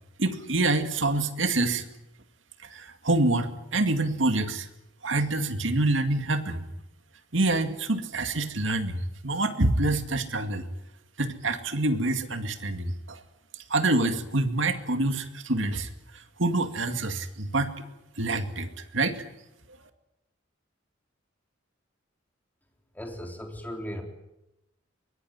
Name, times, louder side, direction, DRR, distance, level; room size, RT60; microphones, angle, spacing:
voice 1, 0.2-1.8 2.7-4.7 5.0-6.6 7.3-10.7 11.2-13.2 13.7-15.9 16.1-17.7 18.2-19.2, right 2 dB, 70° right, 8 dB, 2.3 m, -26 dB
voice 2, 22.9-24.0, equal, 10° left, 3 dB, 3.7 m, -37 dB
23.5 x 21.0 x 9.6 m, 0.90 s
head